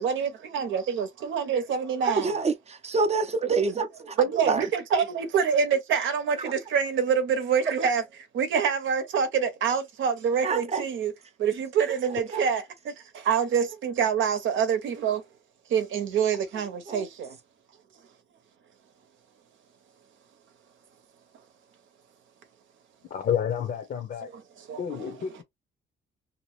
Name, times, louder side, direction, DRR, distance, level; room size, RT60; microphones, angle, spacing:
voice 1, 0.0-2.4 4.2-8.0 8.3-11.1 11.4-15.2 15.7-17.4 24.7-24.8, right 7 dB, 75° right, 0.9 m, -26 dB
voice 2, 2.1-4.7 6.4-6.5 10.4-10.8 12.3-12.5 16.9-17.0, right 4 dB, 35° right, 0.6 m, -27 dB
voice 3, 23.1-24.3 24.8-25.4, left 8 dB, 50° left, 0.7 m, -29 dB
2.7 x 2.0 x 3.2 m
cardioid pair, 90°, 20 cm